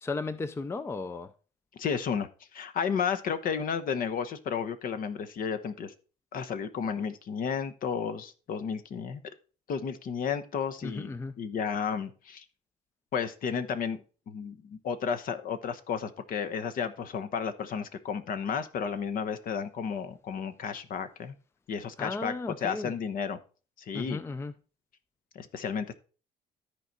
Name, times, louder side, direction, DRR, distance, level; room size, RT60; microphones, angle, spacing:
voice 1, 0.0-1.3 10.8-11.3 22.0-23.0 23.9-24.5, left 3 dB, 15° left, 0.5 m, -35 dB
voice 2, 1.8-5.9 6.3-9.2 9.7-11.1 11.4-12.4 13.1-21.3 21.7-23.4 23.9-24.2 25.3-25.9, left 6 dB, 55° left, 1.0 m, -32 dB
13.0 x 4.7 x 4.1 m
cardioid pair, 110°, 17 cm